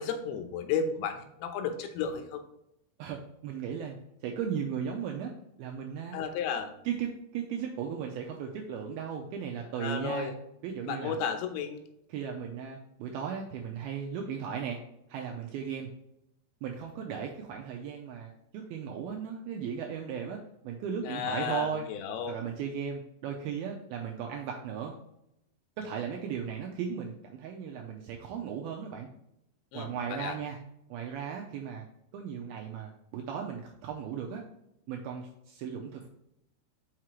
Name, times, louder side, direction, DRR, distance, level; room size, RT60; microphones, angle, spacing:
voice 1, 0.0-2.4 6.1-6.7 9.8-10.4 10.9-11.8 21.0-22.4 29.7-30.4, left 6 dB, 90° left, 7 dB, 3.1 m, -33 dB
voice 2, 3.0-4.0 4.2-5.3 5.6-6.2 6.9-10.3 10.6-11.2 12.1-14.8 15.1-15.9 16.6-21.8 22.3-24.9 25.8-29.1 29.7-30.6 30.9-31.9 32.1-34.4 34.9-36.1, right 7 dB, 90° right, 1 dB, 2.2 m, -36 dB
6.2 x 5.7 x 3.0 m, 0.81 s
omnidirectional pair, 5.0 m